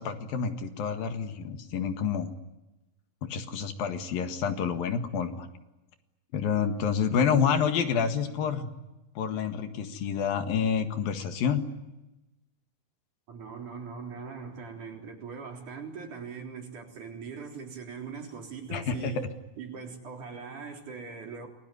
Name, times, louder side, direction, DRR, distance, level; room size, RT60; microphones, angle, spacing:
voice 1, 0.0-2.3 3.2-5.5 6.3-8.7 9.2-11.7 18.7-19.3, left 7 dB, 70° left, 3.5 m, -28 dB
voice 2, 13.3-19.2 19.6-21.5, right 5 dB, 55° right, 5.1 m, -41 dB
28.5 x 21.5 x 9.6 m
omnidirectional pair, 4.3 m